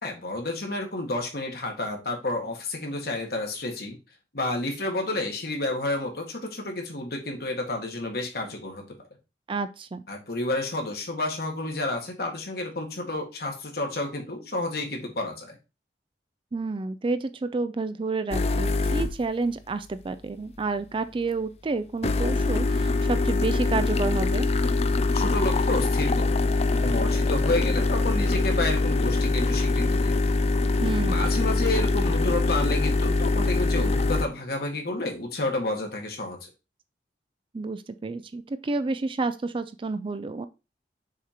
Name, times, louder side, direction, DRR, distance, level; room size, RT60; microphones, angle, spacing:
voice 1, 0.0-4.0 4.3-8.8 10.1-15.6 25.1-26.4 26.7-30.1 31.0-36.5, left 2 dB, 60° left, 2 dB, 1.6 m, -30 dB
voice 2, 9.5-10.0 16.5-24.5 30.8-31.2 37.5-40.5, right 3 dB, 30° right, 12 dB, 0.4 m, -30 dB
sound 1, 18.3-19.3 22.0-34.3, left 3 dB, 35° left, 0.4 m, -23 dB
6.6 x 2.9 x 4.9 m, 0.28 s
head